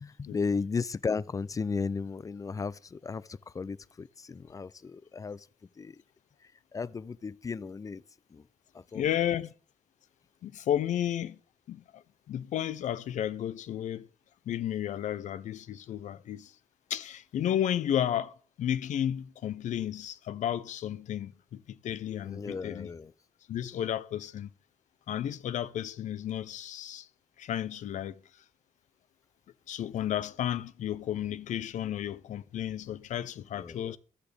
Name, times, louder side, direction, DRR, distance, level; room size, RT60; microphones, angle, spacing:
voice 1, 0.0-5.5 5.8-6.0 6.7-8.0 8.3-8.4 8.7-9.0 22.2-23.1 33.6-34.0, left 4 dB, 25° left, 0.4 m, -35 dB
voice 2, 8.9-9.5 10.4-11.4 11.7-14.1 14.5-16.5 16.9-22.9 23.5-24.5 25.1-27.1 27.4-28.2 29.7-34.0, left 10 dB, 75° left, 0.7 m, -33 dB
15.0 x 11.5 x 3.4 m
cardioid pair, 105°, 13 cm